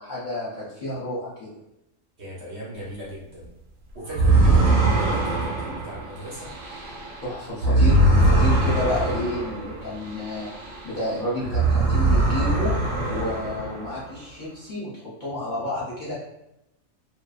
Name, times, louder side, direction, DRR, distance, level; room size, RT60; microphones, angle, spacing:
voice 1, 0.0-1.5 7.2-10.5 10.8-12.7 13.1-16.2, left 1 dB, 45° left, -9 dB, 0.8 m, -30 dB
voice 2, 2.2-3.5 3.9-6.5, right 1 dB, 55° right, -6 dB, 1.0 m, -37 dB
sound 1, 4.1-11.0 11.4-14.1, right 2 dB, 70° right, 1.1 m, -22 dB
2.6 x 2.1 x 2.3 m, 0.86 s
omnidirectional pair, 1.4 m